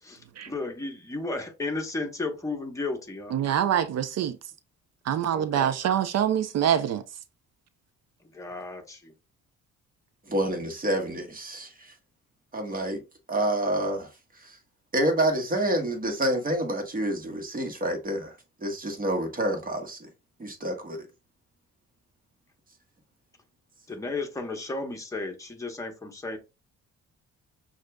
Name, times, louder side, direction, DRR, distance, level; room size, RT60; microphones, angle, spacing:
voice 1, 0.0-3.3 5.3-5.7 8.2-9.1 23.9-26.4, left 3 dB, 10° left, 1.0 m, -34 dB
voice 2, 3.3-4.4 5.0-7.0, right 9 dB, 60° right, 0.5 m, -25 dB
voice 3, 10.3-11.9 12.5-13.0 13.3-14.1 14.4-14.6 14.9-18.3 18.6-20.1 20.4-21.1, right 1 dB, 30° right, 1.3 m, -28 dB
6.3 x 2.5 x 2.2 m
cardioid pair, 90°, 30 cm